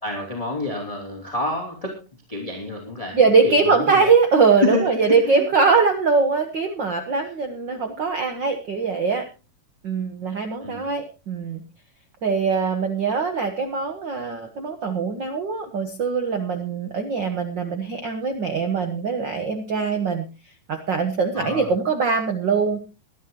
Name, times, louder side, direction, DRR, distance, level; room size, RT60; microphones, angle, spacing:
voice 1, 0.0-2.0 2.3-3.2 3.4-4.0 4.6-5.4 10.6-10.8 21.3-21.7, left 2 dB, 10° left, 0 dB, 2.8 m, -28 dB
voice 2, 3.1-9.3 9.8-11.6 12.2-20.2 20.7-22.8, right 4 dB, 60° right, 7 dB, 1.2 m, -22 dB
22.0 x 11.0 x 3.0 m, 0.30 s
omnidirectional pair, 3.8 m